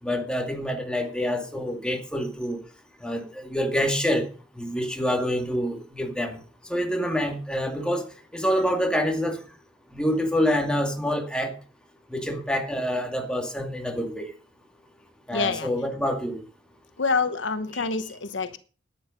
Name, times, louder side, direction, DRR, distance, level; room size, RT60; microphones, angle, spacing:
voice 1, 0.0-2.6 3.0-4.3 4.5-6.4 6.7-9.4 9.9-11.6 12.1-14.3 15.3-16.4 17.7-17.9, equal, 5° left, 2.3 m, -27 dB
voice 2, 15.3-15.7 17.0-18.6, left 4 dB, 80° left, 1.1 m, -26 dB
12.0 x 10.0 x 5.3 m
head